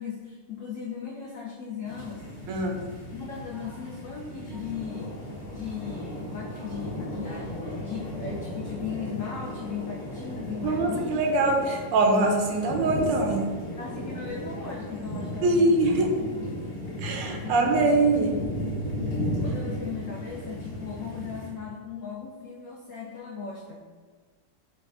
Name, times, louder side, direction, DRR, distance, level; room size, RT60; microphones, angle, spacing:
voice 1, 0.0-2.2 3.1-5.1 5.5-11.4 13.8-16.5 16.9-18.7 19.4-23.8, left 6 dB, 80° left, -3 dB, 0.7 m, -38 dB
sound 1, 1.9-21.5, equal, 50° left, 0.9 m, -35 dB
voice 2, 2.5-2.8 10.6-13.5 15.4-16.1 17.0-18.4, right 2 dB, 85° right, 2 dB, 1.3 m, -23 dB
6.7 x 2.3 x 2.4 m, 1.5 s
omnidirectional pair, 1.9 m